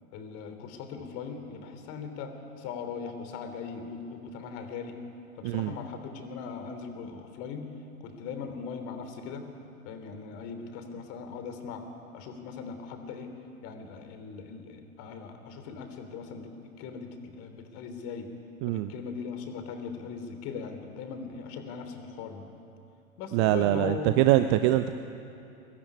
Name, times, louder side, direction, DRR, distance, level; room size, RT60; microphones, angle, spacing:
voice 1, 0.1-2.3 2.6-5.0 5.4-7.6 8.0-9.4 9.8-11.8 12.1-13.3 13.6-18.3 18.7-22.4 23.2-24.2, left 5 dB, 35° left, 7 dB, 3.3 m, -39 dB
voice 2, 23.3-24.9, right 14 dB, 20° right, 11 dB, 0.5 m, -23 dB
23.5 x 19.5 x 9.7 m, 2.8 s
figure-of-eight pair, 100°, 43 cm